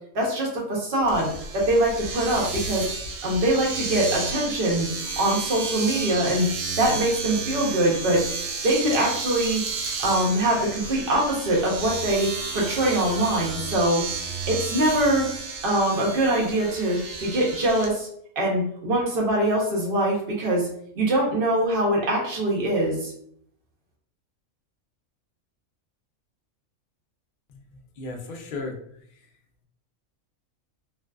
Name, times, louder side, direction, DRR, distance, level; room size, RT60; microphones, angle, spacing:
voice 1, 0.1-2.9 3.2-4.9 5.2-6.5 6.8-8.2 8.6-9.6 10.0-14.0 14.5-15.3 15.6-18.1 18.4-20.7 21.0-23.1, right 1 dB, 50° right, -2 dB, 0.8 m, -23 dB
Domestic sounds home sounds, 1.1-17.9, right 4 dB, 80° right, 1.0 m, -32 dB
voice 2, 27.5-28.8, left 3 dB, 75° left, 2 dB, 0.4 m, -35 dB
2.5 x 2.3 x 2.2 m, 0.67 s
omnidirectional pair, 1.4 m